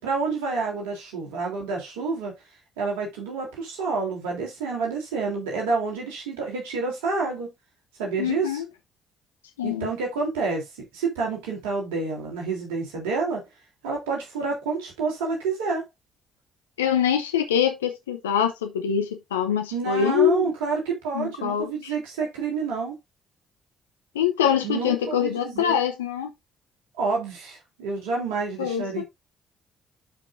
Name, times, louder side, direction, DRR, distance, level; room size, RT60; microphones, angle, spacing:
voice 1, 0.0-2.3 2.8-7.5 8.0-8.6 9.6-13.4 13.8-15.8 19.7-22.9 24.6-25.8 27.0-29.0, right 4 dB, 75° right, 3.4 m, -28 dB
voice 2, 8.2-8.6 9.6-9.9 16.8-20.5 21.1-21.9 24.1-26.3 28.6-29.0, left 9 dB, 85° left, 0.7 m, -24 dB
12.0 x 5.2 x 2.6 m
figure-of-eight pair, 45°, 0 cm